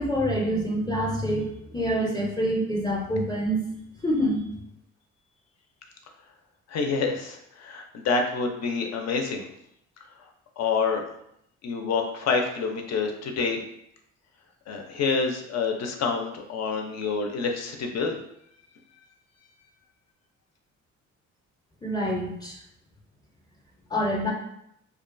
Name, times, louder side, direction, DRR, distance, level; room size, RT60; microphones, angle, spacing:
voice 1, 0.0-3.6 4.0-4.4 21.8-22.6 23.9-24.3, equal, 15° left, -2 dB, 0.6 m, -26 dB
voice 2, 6.7-9.5 10.6-11.0 11.6-13.6 14.7-18.2, left 4 dB, 60° left, 3 dB, 0.5 m, -27 dB
2.5 x 2.2 x 2.5 m, 0.76 s
cardioid pair, 90°, 30 cm